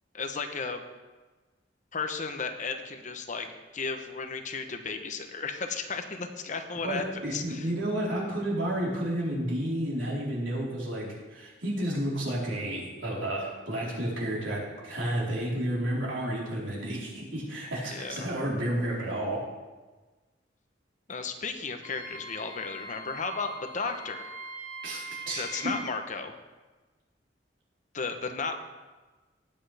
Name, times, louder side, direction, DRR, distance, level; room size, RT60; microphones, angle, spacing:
voice 1, 0.1-0.8 1.9-3.5 3.7-7.0 7.3-7.7 17.9-18.3 21.1-24.3 25.4-26.3 27.9-28.5, left 4 dB, 40° left, 6 dB, 0.9 m, -34 dB
voice 2, 6.8-19.4 24.8-25.8, right 1 dB, 85° right, -5 dB, 4.3 m, -31 dB
Wind instrument woodwind instrument, 21.8-25.9, right 2 dB, 25° left, 1.8 m, -42 dB
19.5 x 7.9 x 3.5 m, 1.2 s
head